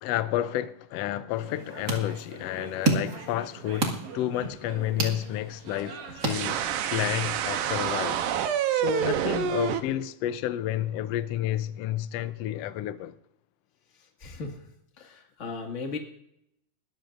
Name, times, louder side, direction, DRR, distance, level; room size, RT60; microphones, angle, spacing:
voice 1, 0.0-6.6 6.9-8.2 8.7-13.2, left 13 dB, 85° left, 1.4 m, -30 dB
sound 1, 1.3-7.0, right 5 dB, 65° right, 2.9 m, -45 dB
sound 2, 1.4-7.0, right 4 dB, 35° right, 2.1 m, -32 dB
sound 3, 6.2-9.8, right 10 dB, 85° right, 2.4 m, -27 dB
voice 2, 13.9-14.7 15.0-16.0, left 4 dB, 25° left, 1.8 m, -37 dB
21.5 x 13.5 x 2.6 m
omnidirectional pair, 3.7 m